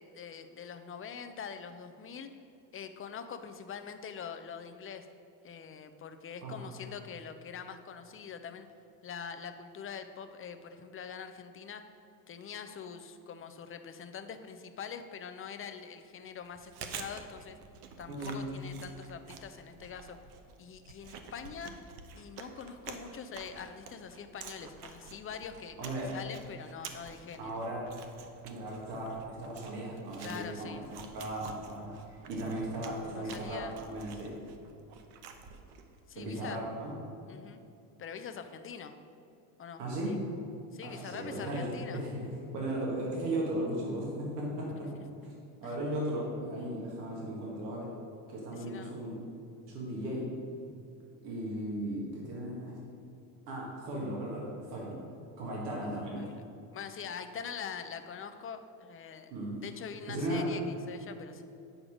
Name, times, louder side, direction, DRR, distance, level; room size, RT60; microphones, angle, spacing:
voice 1, 0.0-2.3 2.7-5.1 5.4-8.7 9.0-11.8 12.3-17.6 18.0-20.2 20.6-21.8 22.2-27.6 30.2-30.8 33.1-33.7 36.1-36.6 37.3-37.6 38.0-39.0 39.6-40.2 40.7-42.1 44.7-45.1 45.6-45.8 48.5-49.0 56.1-56.5 56.7-59.3 59.6-61.4, left 7 dB, 30° left, 8 dB, 0.6 m, -44 dB
voice 2, 6.4-6.8 18.1-18.5 25.8-26.1 27.4-27.8 28.4-34.3 36.1-36.9 39.8-40.2 40.8-42.3 42.5-45.0 45.2-45.3 45.6-47.9 48.3-49.2 49.6-50.3 51.2-52.8 53.5-55.0 55.4-56.3 59.3-59.6 60.1-60.5, right 1 dB, 80° right, -3 dB, 1.9 m, -36 dB
Chewing mastication, 16.4-36.0, right 6 dB, 55° right, 0.9 m, -49 dB
8.8 x 4.9 x 4.9 m, 2.7 s
hypercardioid pair, 80°, 47 cm